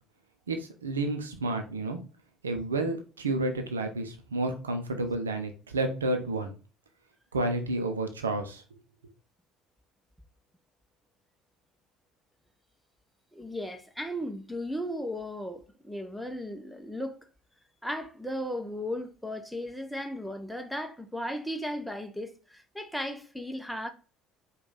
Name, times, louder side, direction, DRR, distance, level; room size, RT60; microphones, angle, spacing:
voice 1, 0.5-2.0 2.4-6.5 7.3-8.6, right 2 dB, 80° right, 0.6 m, -30 dB
voice 2, 13.3-17.2 17.8-23.9, equal, ahead, 0.7 m, -36 dB
4.9 x 2.4 x 3.9 m
figure-of-eight pair, 60°, 0 cm